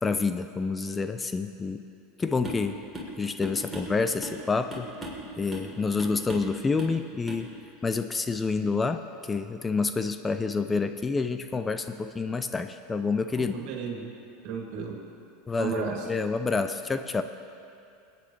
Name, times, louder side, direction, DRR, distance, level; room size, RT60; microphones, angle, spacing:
voice 1, 0.0-1.8 2.2-2.8 3.2-4.9 5.4-7.5 7.8-13.5 15.5-17.2, left 4 dB, 20° left, 9 dB, 0.5 m, -28 dB
sound 1, 2.4-2.7 2.9-3.1 3.4-4.4 4.7-5.2 5.5-5.7 6.0-6.5 6.8-7.0 7.3-7.4, equal, 10° right, 3.3 m, -38 dB
voice 2, 13.4-14.1 14.4-15.0 15.6-16.1, right 6 dB, 60° right, 0 dB, 2.4 m, -34 dB
22.5 x 9.4 x 3.2 m, 2.6 s
hypercardioid pair, 105°, 0 cm